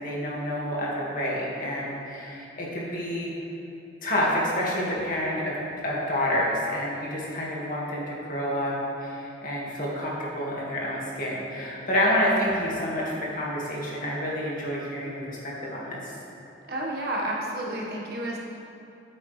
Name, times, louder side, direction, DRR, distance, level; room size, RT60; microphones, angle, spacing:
voice 1, 0.0-3.3 4.0-5.6 5.8-8.7 9.0-16.1, equal, 50° left, -5 dB, 2.3 m, -28 dB
voice 2, 16.7-18.4, right 1 dB, 55° right, -3 dB, 1.7 m, -30 dB
14.0 x 8.6 x 3.5 m, 2.8 s
head